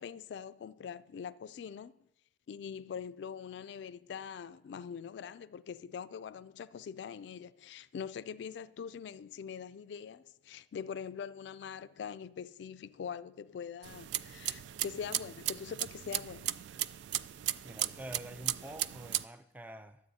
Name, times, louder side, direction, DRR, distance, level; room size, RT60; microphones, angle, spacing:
voice 1, 0.0-1.9 2.5-16.5, left 7 dB, 75° left, 0.3 m, -43 dB
sound 1, 13.8-19.2, right 13 dB, 85° right, 0.3 m, -36 dB
voice 2, 17.6-20.0, right 1 dB, 10° right, 0.4 m, -47 dB
22.0 x 7.6 x 2.8 m
head